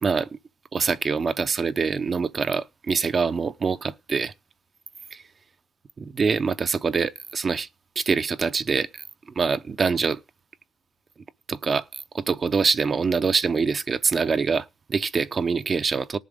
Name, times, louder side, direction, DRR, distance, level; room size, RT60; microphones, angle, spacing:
voice 1, 0.7-4.3 6.0-7.7 8.0-8.9 9.4-10.2 11.5-16.2, right 5 dB, 40° right, 0.7 m, -24 dB
18.5 x 7.3 x 3.7 m
cardioid pair, 90°, 0 cm